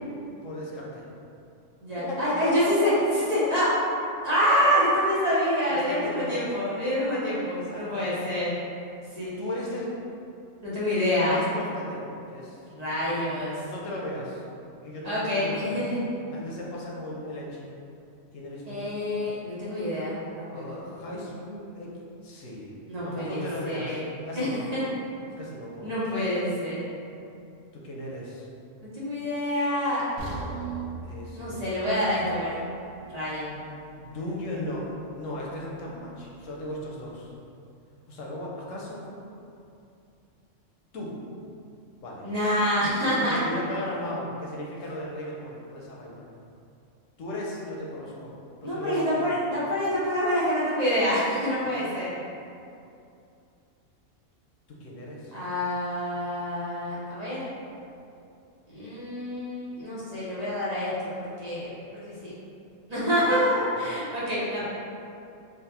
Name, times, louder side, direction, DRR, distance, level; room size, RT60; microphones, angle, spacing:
voice 1, 0.4-1.0 2.0-3.1 5.7-6.4 6.7-6.8 7.2-7.3 7.6-8.1 9.4-9.9 11.3-12.6 12.9-13.3 13.7-14.4 14.8-15.8 16.3-17.7 18.3-18.9 20.5-21.9 22.2-22.7 23.0-24.6 25.4-25.9 27.7-28.5 31.0-31.6 34.0-37.3 38.1-39.2 40.9-41.2 42.0-42.3 43.2-46.2 47.2-48.3 48.6-49.4 54.8-55.3 63.7-64.1, left 1 dB, 90° left, -3 dB, 1.1 m, -36 dB
voice 2, 1.8-2.9 3.3-3.7 4.2-8.5 9.1-9.3 10.6-11.4 12.7-13.6 15.0-16.0 18.7-20.8 22.9-24.0 24.3-24.8 25.8-26.8 28.9-30.0 31.3-32.5 33.1-33.6 42.2-43.4 48.6-52.1 55.3-57.5 58.7-62.3 62.9-64.7, equal, 35° right, -9 dB, 0.8 m, -27 dB
sound 1, 30.2-34.2 34.6-34.8 35.3-35.4, right 4 dB, 80° right, 1.0 m, -40 dB
3.9 x 2.2 x 4.1 m, 2.6 s
omnidirectional pair, 1.3 m